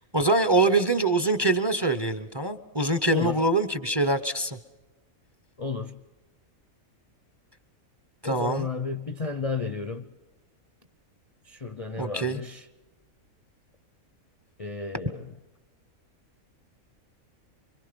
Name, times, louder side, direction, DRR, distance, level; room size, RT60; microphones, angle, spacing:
voice 1, 0.1-4.6 8.2-8.7 11.9-12.4, right 2 dB, 20° right, 0.8 m, -24 dB
voice 2, 3.1-3.4 5.6-6.0 8.2-10.1 11.4-12.7 14.6-15.3, left 4 dB, 35° left, 0.6 m, -33 dB
26.0 x 24.0 x 5.3 m
omnidirectional pair, 1.5 m